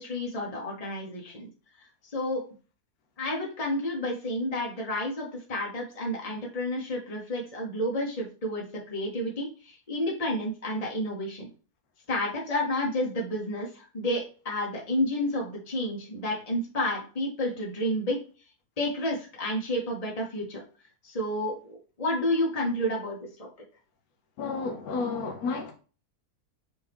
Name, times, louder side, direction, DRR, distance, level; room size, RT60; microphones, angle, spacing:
voice 1, 0.0-1.5 2.0-2.4 3.2-11.5 12.1-18.2 18.8-20.6 21.0-23.5, left 1 dB, 30° left, 0.9 m, -30 dB
voice 2, 24.4-25.7, left 4 dB, 75° left, 1.1 m, -31 dB
5.3 x 2.7 x 3.4 m
omnidirectional pair, 1.7 m